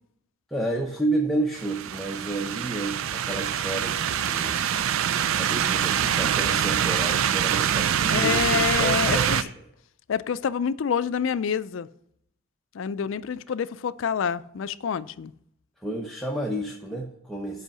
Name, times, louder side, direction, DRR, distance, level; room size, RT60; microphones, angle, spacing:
voice 1, 0.5-4.6 5.4-9.5 15.8-17.6, right 2 dB, ahead, 0.7 m, -30 dB
sound 1, 1.5-9.4, right 9 dB, 70° right, 0.4 m, -25 dB
voice 2, 8.1-9.4 10.1-11.9 12.7-15.3, left 7 dB, 65° left, 0.4 m, -27 dB
8.2 x 5.5 x 6.1 m
head